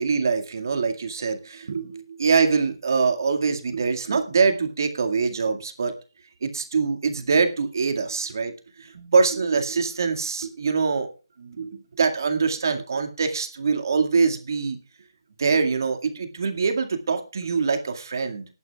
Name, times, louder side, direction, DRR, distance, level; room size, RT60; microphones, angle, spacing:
voice 1, 0.0-5.9 6.4-11.1 11.4-14.8 15.4-18.5, right 5 dB, 50° right, 5 dB, 2.1 m, -24 dB
21.0 x 11.0 x 2.4 m, 0.33 s
figure-of-eight pair, 165°, 3 cm